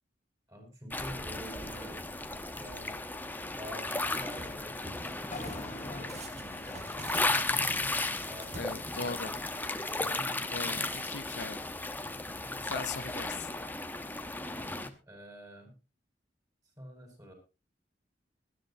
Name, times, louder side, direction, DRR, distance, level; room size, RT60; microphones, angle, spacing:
voice 1, 0.5-2.1 2.5-3.0 3.5-9.4 9.8-10.4 14.5-15.7 16.8-17.3, equal, 20° right, 4 dB, 6.1 m, -48 dB
sound 1, 0.9-14.9, left 2 dB, 10° left, 1.2 m, -35 dB
sound 2, 3.9-4.5 4.8-5.7 6.1-9.3, right 2 dB, 40° right, 2.4 m, -48 dB
sound 3, 5.3-9.4, left 3 dB, 40° left, 1.4 m, -47 dB
voice 2, 8.6-9.3 10.5-11.6 12.6-13.5, left 4 dB, 70° left, 17 dB, 0.8 m, -39 dB
20.0 x 13.5 x 2.9 m, 0.30 s
head